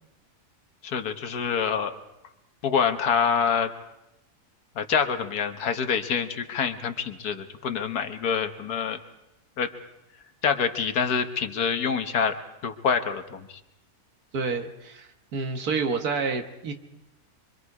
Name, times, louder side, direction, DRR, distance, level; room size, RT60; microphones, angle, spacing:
voice 1, 0.8-2.0 2.6-3.7 4.8-9.0 9.6-9.7 10.4-12.3 12.6-13.6, left 6 dB, 90° left, 7 dB, 1.7 m, -26 dB
voice 2, 14.3-16.7, right 4 dB, 80° right, 6 dB, 2.0 m, -29 dB
25.0 x 24.5 x 4.9 m, 0.91 s
omnidirectional pair, 1.6 m